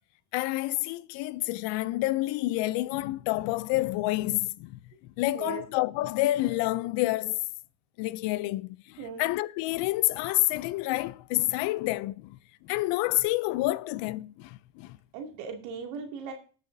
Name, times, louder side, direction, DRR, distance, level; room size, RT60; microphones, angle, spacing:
voice 1, 0.3-7.5 8.0-15.0, left 18 dB, 75° left, 0.7 m, -29 dB
voice 2, 15.1-16.3, right 6 dB, 85° right, 2.6 m, -38 dB
19.5 x 6.7 x 2.7 m
supercardioid pair, 85°, 43 cm